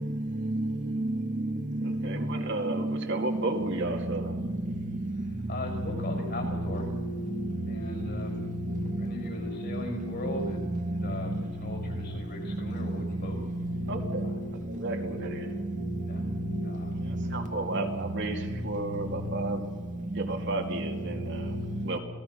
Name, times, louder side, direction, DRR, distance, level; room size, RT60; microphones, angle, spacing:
voice 1, 1.8-4.4 13.9-14.3 14.7-15.5 17.1-19.6 20.1-22.0, right 2 dB, 55° right, 2.4 m, -33 dB
voice 2, 5.5-6.9 7.7-8.4 9.0-10.6 10.9-13.4 14.2-14.3 16.1-16.3 16.6-17.1, left 2 dB, 50° left, 6.0 m, -38 dB
voice 3, 6.2-7.2 7.7-7.8 8.3-8.4 8.7-9.4 10.3-11.1 13.0-13.1 13.5-13.9 15.8-16.0 16.5-17.4, right 1 dB, 35° right, 1.7 m, -32 dB
27.5 x 18.0 x 5.8 m
head